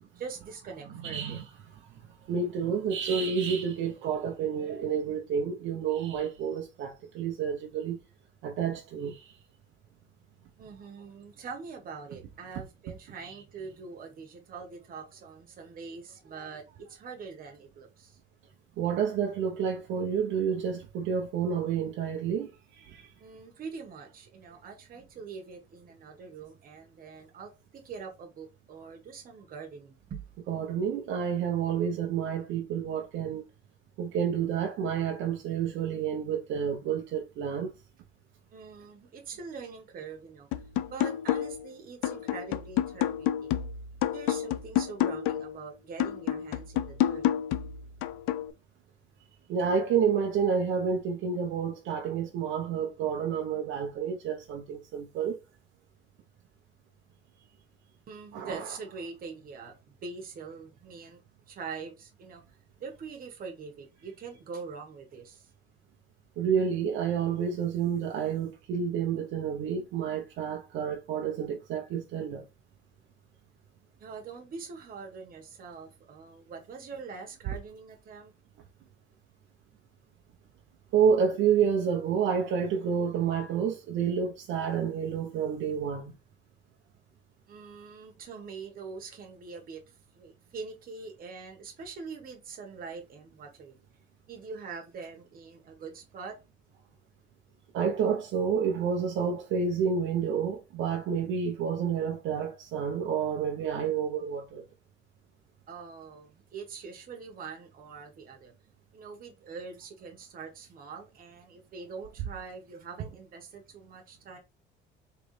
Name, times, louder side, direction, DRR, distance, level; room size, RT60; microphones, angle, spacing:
voice 1, 0.1-1.4 10.6-18.2 23.2-30.3 38.5-40.5 40.9-43.5 44.1-47.2 58.1-61.2 61.5-62.4 62.8-65.5 74.0-78.3 87.5-93.8 94.3-96.4 105.7-108.5 108.9-114.4, right 5 dB, 45° right, 1.3 m, -43 dB
voice 2, 1.0-1.4 2.3-8.0 8.4-9.3 13.2-13.3 18.8-23.1 30.5-33.4 34.0-37.7 49.5-55.4 58.3-58.6 66.4-72.4 80.9-86.1 97.7-104.6, right 7 dB, 70° right, 0.8 m, -29 dB
sound 1, 40.5-41.7 42.0-45.6 46.0-48.5, left 11 dB, 90° left, 0.5 m, -29 dB
4.0 x 3.3 x 3.2 m
cardioid pair, 125°, 21 cm